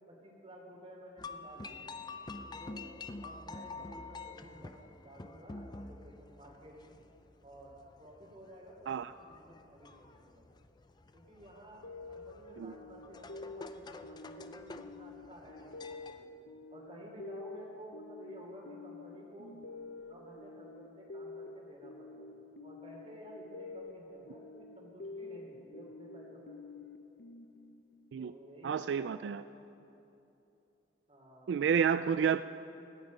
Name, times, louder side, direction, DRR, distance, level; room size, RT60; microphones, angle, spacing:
voice 1, 0.1-1.9 2.5-2.9 3.2-4.8 5.0-7.0 7.4-10.4 11.1-16.3 16.7-19.6 20.0-22.3 22.6-26.6 28.2-29.2 31.1-31.5, equal, 35° right, -3 dB, 2.9 m, -53 dB
sound 1, 1.2-16.2, left 3 dB, 25° left, 0.5 m, -48 dB
sound 2, 11.8-28.2, left 3 dB, 90° left, 0.7 m, -49 dB
voice 2, 28.6-29.4 31.5-32.4, right 7 dB, 80° right, 12 dB, 0.3 m, -30 dB
18.0 x 14.5 x 5.3 m, 2.9 s
head